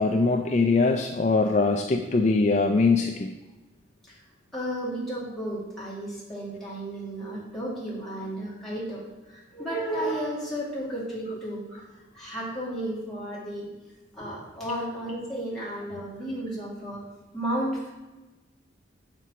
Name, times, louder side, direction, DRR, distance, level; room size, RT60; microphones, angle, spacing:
voice 1, 0.0-3.3, left 3 dB, 35° left, 4 dB, 0.4 m, -22 dB
voice 2, 4.5-13.7 14.1-17.1 17.3-17.9, right 1 dB, ahead, -8 dB, 2.3 m, -33 dB
6.8 x 4.5 x 6.0 m, 1.1 s
head